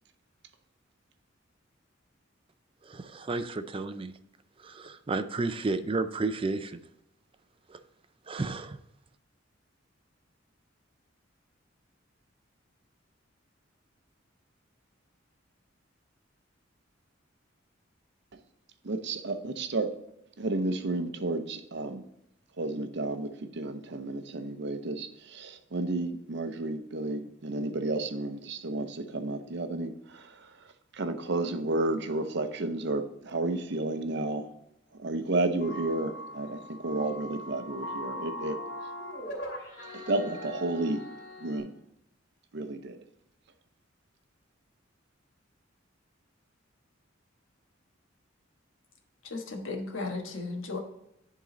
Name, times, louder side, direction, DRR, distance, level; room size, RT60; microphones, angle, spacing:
voice 1, 2.8-4.1 4.6-6.8 7.7-7.8 8.3-8.8, right 3 dB, 30° right, 0.4 m, -32 dB
voice 2, 18.8-20.0 20.4-22.0 22.6-30.5 30.9-34.5 35.0-38.6 39.9-41.1 41.4-41.7 42.5-43.0, right 2 dB, 60° right, 0.7 m, -32 dB
sound 1, 35.6-41.6, left 1 dB, 65° left, 2.6 m, -40 dB
voice 3, 49.2-50.8, left 3 dB, 85° left, 1.4 m, -35 dB
10.5 x 3.8 x 3.9 m
head